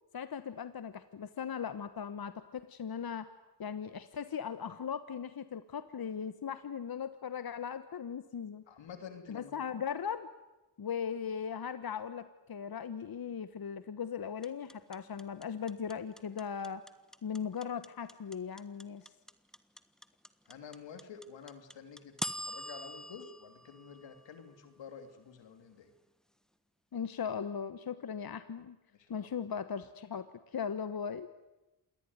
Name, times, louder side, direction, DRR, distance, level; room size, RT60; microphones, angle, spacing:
voice 1, 0.1-3.3 3.6-8.6 9.3-10.3 10.8-16.8 17.2-19.1 26.9-28.8 29.1-31.3, left 7 dB, 55° left, 12 dB, 1.3 m, -38 dB
voice 2, 8.7-9.5 20.5-22.1 22.5-25.9 29.0-29.3, left 6 dB, 85° left, 7 dB, 3.0 m, -49 dB
sound 1, 14.4-24.6, equal, ahead, 1.5 m, -43 dB
27.0 x 19.0 x 9.6 m, 1.1 s
cardioid pair, 50°, 43 cm